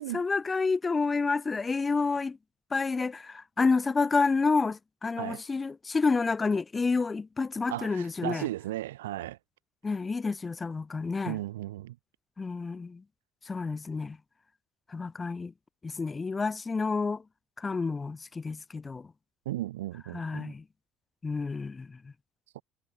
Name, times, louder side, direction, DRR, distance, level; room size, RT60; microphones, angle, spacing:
voice 1, 0.0-2.4 2.7-8.5 9.8-11.4 12.4-13.0 13.5-14.2 14.9-15.5 15.8-17.2 17.6-19.1 20.1-20.6 21.2-22.0, left 4 dB, 25° left, 0.9 m, -29 dB
voice 2, 7.7-9.4 11.2-12.0 19.5-20.5 22.5-22.6, right 15 dB, 90° right, 2.3 m, -35 dB
hypercardioid pair, 70°, 0 cm